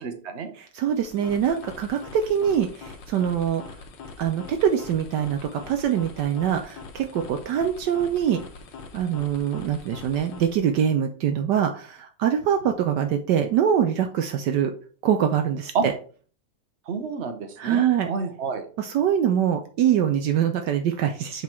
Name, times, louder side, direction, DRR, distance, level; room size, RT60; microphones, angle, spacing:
voice 1, 0.0-0.5 15.7-15.9 16.9-18.7, right 5 dB, 45° right, 7 dB, 1.1 m, -29 dB
voice 2, 0.6-3.6 4.2-8.4 8.9-14.7 15.0-15.9 17.6-18.1 18.8-21.4, right 9 dB, 75° right, 5 dB, 1.3 m, -24 dB
sound 1, 0.8-10.8, left 4 dB, 85° left, 1.7 m, -43 dB
7.3 x 3.9 x 4.4 m, 0.41 s
omnidirectional pair, 1.9 m